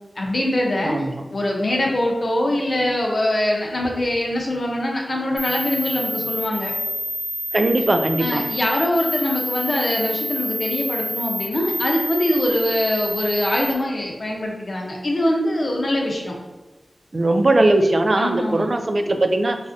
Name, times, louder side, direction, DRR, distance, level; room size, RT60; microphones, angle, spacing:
voice 1, 0.2-1.1 1.3-6.7 8.2-16.3 18.2-18.7, left 1 dB, 60° left, -1 dB, 0.7 m, -23 dB
voice 2, 0.8-1.2 7.5-8.4 17.1-19.6, right 2 dB, 55° right, 6 dB, 0.3 m, -19 dB
sound 1, 5.4-13.7, equal, 20° left, 1.0 m, -28 dB
3.2 x 2.5 x 2.5 m, 1.2 s
cardioid pair, 45°, 0 cm